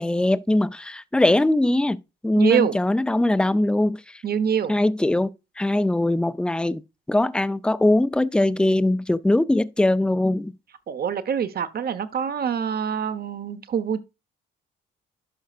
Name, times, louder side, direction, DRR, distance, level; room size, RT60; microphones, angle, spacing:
voice 1, 0.0-4.2 4.7-5.3 5.6-6.8 7.1-10.5, left 1 dB, 5° left, 0.5 m, -21 dB
voice 2, 2.4-2.8 4.2-4.7 10.9-14.0, right 7 dB, 50° right, 1.1 m, -25 dB
11.5 x 5.6 x 2.4 m
cardioid pair, 90°, 20 cm